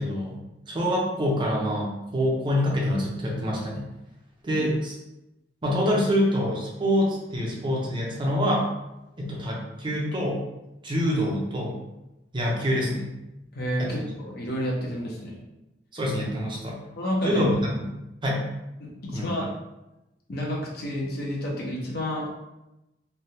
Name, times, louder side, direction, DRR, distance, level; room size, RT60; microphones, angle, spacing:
voice 1, 0.0-3.8 4.4-5.0 5.6-8.7 9.2-10.4 10.8-11.8 12.3-13.1 13.8-14.0 15.9-16.8 17.2-17.9 18.2-18.4 19.1-19.5, equal, 25° right, -2 dB, 0.6 m, -26 dB
voice 2, 13.5-15.4 17.0-17.5 18.8-19.5 20.3-22.3, equal, 60° left, -2 dB, 0.7 m, -30 dB
3.2 x 2.2 x 2.7 m, 0.95 s
head